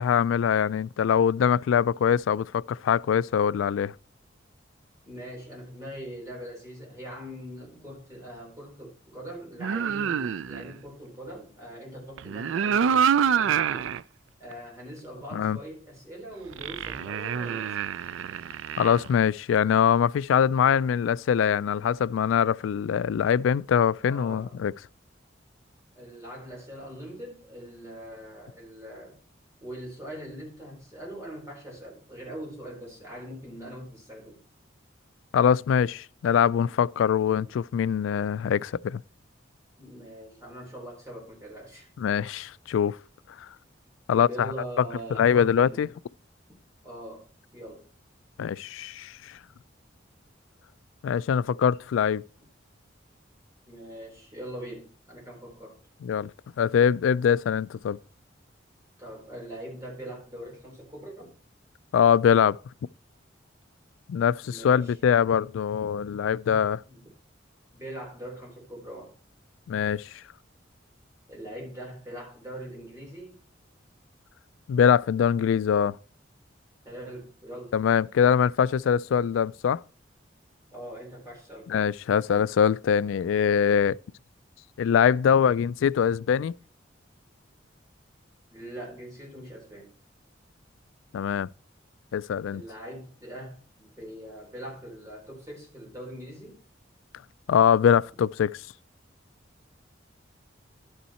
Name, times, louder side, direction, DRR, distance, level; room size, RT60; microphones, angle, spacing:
voice 1, 0.0-3.9 15.3-15.6 18.8-24.7 35.3-39.0 42.0-43.0 44.1-44.5 45.1-45.9 48.4-49.1 51.0-52.2 56.0-56.3 56.6-58.0 61.9-62.6 64.1-66.8 69.7-70.1 74.7-75.9 77.7-79.8 81.7-84.0 84.8-86.5 91.1-91.5 92.1-92.6 97.5-98.6, left 8 dB, 90° left, 0.3 m, -23 dB
voice 2, 5.1-13.9 14.4-17.8 24.0-24.6 25.9-29.2 29.6-34.4 37.2-37.5 39.8-41.9 44.1-45.9 46.8-47.3 47.5-47.9 53.7-55.8 59.0-61.3 64.4-65.0 66.9-67.1 67.7-69.1 71.3-73.4 76.8-77.8 80.7-81.9 88.5-89.9 92.5-96.6, right 1 dB, 15° right, 3.9 m, -42 dB
sound 1, 9.6-10.7 12.2-14.0 14.5-14.6 16.5-19.1, right 7 dB, 90° right, 0.4 m, -26 dB
11.5 x 5.6 x 4.3 m
head